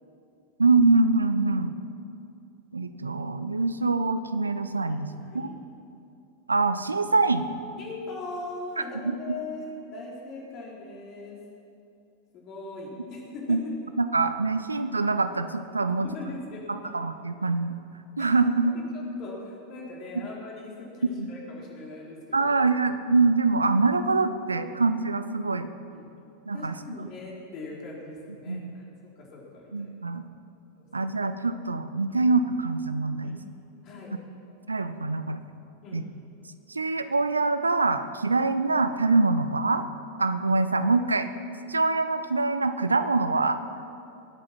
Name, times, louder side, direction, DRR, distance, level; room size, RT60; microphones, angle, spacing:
voice 1, 0.6-1.7 2.7-5.5 6.5-7.5 9.0-9.2 13.5-13.6 14.0-16.1 16.9-17.7 18.2-18.8 20.1-20.3 21.1-21.3 22.3-25.7 26.5-27.1 28.5-28.7 29.7-30.2 30.9-33.4 34.7-35.4 35.9-36.0 36.7-39.8 40.2-41.3 41.7-43.6, right 3 dB, 85° right, 11 dB, 0.7 m, -24 dB
voice 2, 4.9-5.6 7.8-11.4 12.3-13.7 15.9-16.9 18.2-18.3 18.7-22.5 25.9-26.1 26.5-28.8 29.2-29.9 30.7-30.9 32.1-32.2 33.2-33.4 33.8-34.1 35.8-36.0, left 2 dB, 40° left, -3 dB, 4.3 m, -40 dB
22.0 x 8.8 x 6.0 m, 2.6 s
figure-of-eight pair, 90°, 0 cm